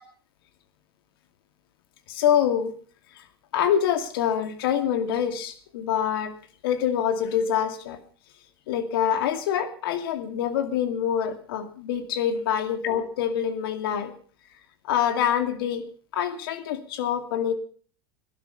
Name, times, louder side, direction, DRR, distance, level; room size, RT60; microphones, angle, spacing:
voice 1, 2.1-2.7 3.5-6.3 6.6-8.0 8.7-14.1 14.8-15.8 16.1-17.5, left 9 dB, 70° left, 9 dB, 2.4 m, -25 dB
15.5 x 12.0 x 5.6 m, 0.43 s
hypercardioid pair, 90°, 13 cm